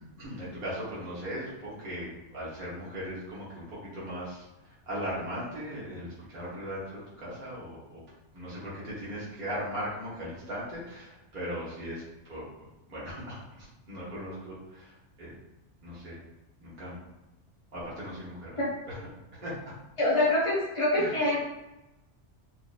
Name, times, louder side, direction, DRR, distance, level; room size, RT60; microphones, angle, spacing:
voice 1, 0.2-4.4 4.9-8.0 8.3-12.0 12.3-12.4 12.9-15.3 15.8-16.2 16.6-17.0 17.7-19.0 19.3-19.7 20.9-21.1, equal, 45° right, -9 dB, 1.4 m, -38 dB
voice 2, 20.0-21.4, left 1 dB, 30° left, -8 dB, 0.8 m, -25 dB
4.4 x 2.9 x 2.5 m, 0.99 s
omnidirectional pair, 1.2 m